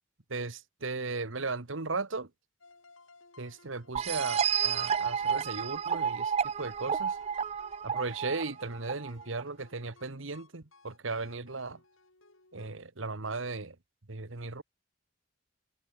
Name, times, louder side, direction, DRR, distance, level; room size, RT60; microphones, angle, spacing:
voice 1, 0.3-2.3 3.4-7.2 7.8-11.8 12.5-13.7 14.1-14.6, right 3 dB, 75° right, 1.5 m, -36 dB
sound 1, 2.6-12.7, left 3 dB, 85° left, 6.7 m, -59 dB
sound 2, 3.9-9.4, right 7 dB, 30° right, 0.3 m, -31 dB
head